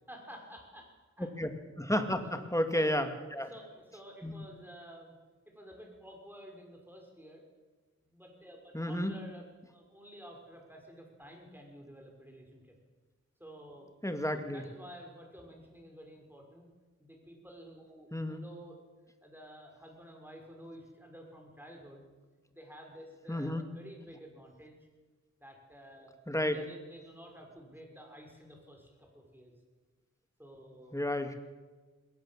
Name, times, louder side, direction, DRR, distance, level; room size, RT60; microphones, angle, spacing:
voice 1, 0.1-0.9 1.2-1.3 2.2-2.5 2.7-2.9 3.3-5.2 5.5-7.4 8.1-12.8 13.4-13.9 14.3-16.7 17.0-18.8 19.2-22.0 22.5-24.8 25.4-26.1 26.4-29.5 30.4-30.9, equal, 5° right, 1 dB, 6.2 m, -51 dB
voice 2, 1.8-3.5 4.2-4.3 8.7-9.1 14.0-14.6 18.1-18.4 23.3-23.7 26.3-26.6 30.9-31.3, left 1 dB, 10° left, 6 dB, 2.3 m, -31 dB
21.5 x 17.5 x 7.6 m, 1.3 s
wide cardioid pair, 40°, 30 cm